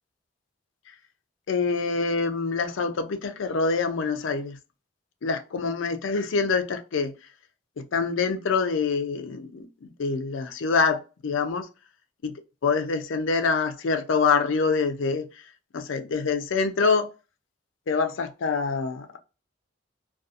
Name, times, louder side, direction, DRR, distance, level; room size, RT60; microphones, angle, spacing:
voice 1, 1.5-4.6 5.2-7.1 7.8-11.7 12.2-12.3 12.6-15.3 15.7-17.1 17.9-19.1, left 4 dB, 80° left, 0.4 m, -25 dB
2.4 x 2.3 x 2.6 m
head